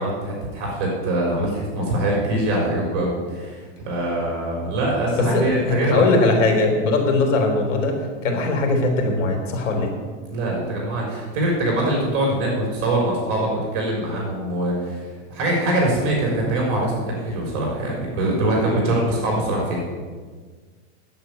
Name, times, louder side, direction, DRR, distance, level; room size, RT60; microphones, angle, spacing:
voice 1, 0.0-6.0 10.3-19.8, right 1 dB, 35° right, -2 dB, 3.8 m, -23 dB
voice 2, 5.2-9.9, left 2 dB, 85° left, 3 dB, 3.8 m, -20 dB
9.9 x 8.0 x 9.5 m, 1.5 s
supercardioid pair, 175°, 36 cm